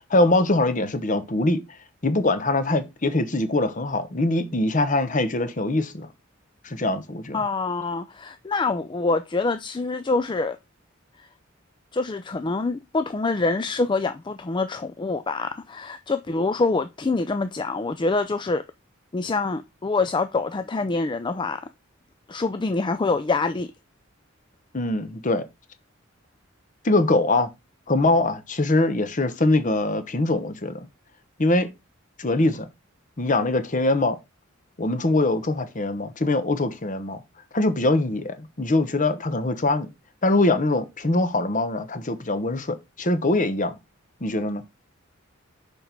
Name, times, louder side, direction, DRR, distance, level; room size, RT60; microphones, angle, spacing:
voice 1, 0.1-1.6 2.0-6.1 6.6-7.4 24.7-25.4 26.8-27.5 27.9-30.9 31.4-31.7 32.2-32.7 33.2-34.2 34.8-37.2 37.5-39.9 40.2-43.8 44.2-44.6, left 2 dB, 40° left, 1.0 m, -23 dB
voice 2, 7.3-10.6 11.2-11.3 11.9-18.6 19.1-21.6 22.3-23.7, left 3 dB, 20° left, 0.4 m, -25 dB
6.3 x 5.3 x 4.5 m
head